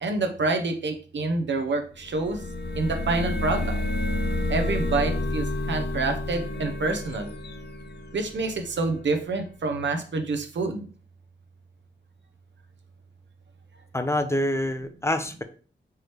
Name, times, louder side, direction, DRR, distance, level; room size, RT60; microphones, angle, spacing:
voice 1, 0.0-2.4 2.7-3.8 4.5-7.3 8.1-10.9, right 3 dB, 70° right, 5 dB, 0.6 m, -27 dB
sound 1, 2.0-8.8, left 2 dB, 60° left, 0.6 m, -29 dB
voice 2, 13.9-15.4, left 1 dB, 15° left, 9 dB, 0.5 m, -26 dB
4.7 x 3.1 x 2.9 m, 0.40 s
wide cardioid pair, 75°, 20 cm